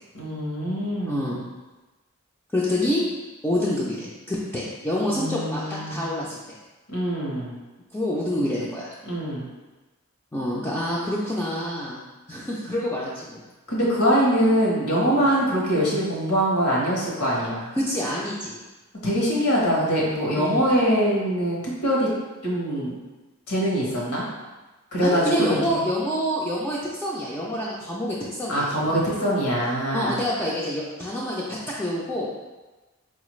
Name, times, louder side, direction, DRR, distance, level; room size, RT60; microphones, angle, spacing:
voice 1, 0.1-1.4 5.1-6.0 6.9-7.5 9.0-9.5 13.7-17.7 19.0-22.1 22.4-22.9 23.5-24.3 24.9-25.5 28.5-30.2, equal, 80° left, -4 dB, 1.0 m, -23 dB
voice 2, 1.1-1.4 2.5-3.0 3.4-6.6 7.9-8.9 10.3-12.0 12.3-13.4 15.0-15.3 17.8-18.6 20.3-20.6 25.0-29.0 29.9-32.3, left 1 dB, 10° left, -8 dB, 0.3 m, -27 dB
4.4 x 2.4 x 3.1 m, 1.2 s
head